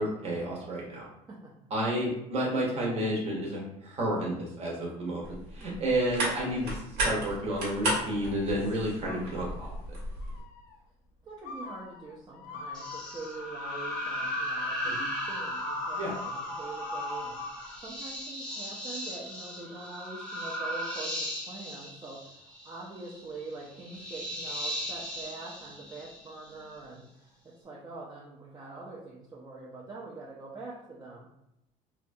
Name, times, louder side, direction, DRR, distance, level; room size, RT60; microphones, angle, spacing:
voice 1, 0.0-1.1 1.7-9.7 14.9-15.1 16.0-16.1, right 1 dB, 45° right, -3 dB, 0.9 m, -31 dB
voice 2, 1.3-1.7 11.2-15.0 15.3-31.3, right 3 dB, 25° right, -5 dB, 0.5 m, -44 dB
sound 1, 5.2-10.4, right 1 dB, 85° right, 1.1 m, -34 dB
sound 2, 9.1-9.8 10.2-10.8 11.4-17.8, left 5 dB, 80° left, 0.4 m, -44 dB
sound 3, 12.7-26.6, equal, 5° left, 0.7 m, -37 dB
2.7 x 2.2 x 2.6 m, 0.84 s
cardioid pair, 130°, 15 cm